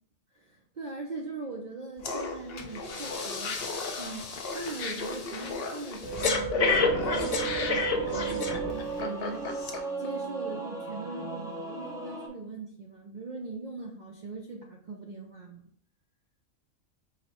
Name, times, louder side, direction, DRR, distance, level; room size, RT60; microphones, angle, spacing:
voice 1, 0.3-3.6 4.0-9.7 10.0-15.6, right 3 dB, 75° right, 1 dB, 0.4 m, -40 dB
Breathing, 2.0-2.2 2.6-9.0 9.6-9.7, left 2 dB, 90° left, 0.3 m, -30 dB
Laughter, 2.0-10.1, left 4 dB, 60° left, 0.7 m, -37 dB
Singing / Musical instrument, 6.7-12.3, right 2 dB, 5° right, 0.4 m, -37 dB
5.2 x 2.0 x 4.2 m, 0.64 s
omnidirectional pair, 1.4 m